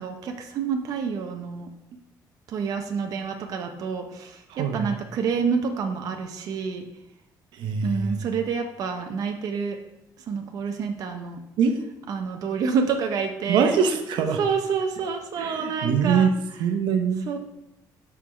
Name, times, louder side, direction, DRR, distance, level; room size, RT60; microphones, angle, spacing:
voice 1, 0.0-1.7 2.5-6.8 7.8-9.8 10.3-11.4 12.1-13.8 14.4-16.3 17.3-17.4, right 5 dB, 50° right, 5 dB, 0.6 m, -28 dB
voice 2, 4.5-4.9 7.5-8.2 11.6-11.8 13.5-14.4 15.4-16.3 16.6-17.2, right 6 dB, 85° right, 7 dB, 0.8 m, -23 dB
5.7 x 4.5 x 6.1 m, 0.90 s
cardioid pair, 180°, 8 cm